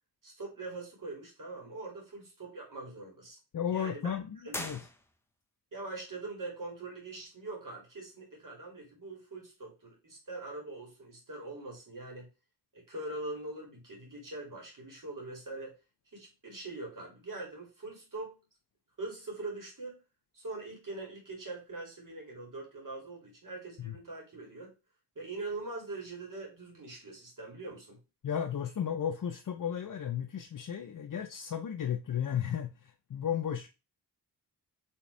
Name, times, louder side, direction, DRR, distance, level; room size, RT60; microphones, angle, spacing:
voice 1, 0.2-3.4 3.7-4.1 4.4-4.7 5.7-12.3 12.7-15.7 16.1-18.4 19.0-20.0 20.3-24.7 25.2-28.0, right 2 dB, 55° right, 2.4 m, -42 dB
voice 2, 3.5-4.8 23.8-23.9 28.2-33.7, left 8 dB, 55° left, 0.6 m, -34 dB
sound 1, 4.5-5.5, left 1 dB, 5° left, 0.7 m, -41 dB
4.5 x 3.5 x 3.2 m
wide cardioid pair, 115°, 38 cm